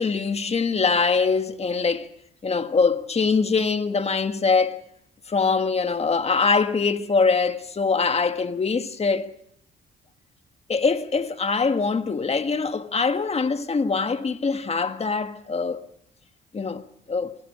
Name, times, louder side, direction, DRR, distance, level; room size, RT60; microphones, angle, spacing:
voice 1, 0.0-2.1 2.4-4.8 5.3-9.3 10.7-15.8 16.5-16.8 17.1-17.4, left 4 dB, 30° left, 1.6 m, -23 dB
25.0 x 18.0 x 6.6 m
cardioid pair, 90°, 20 cm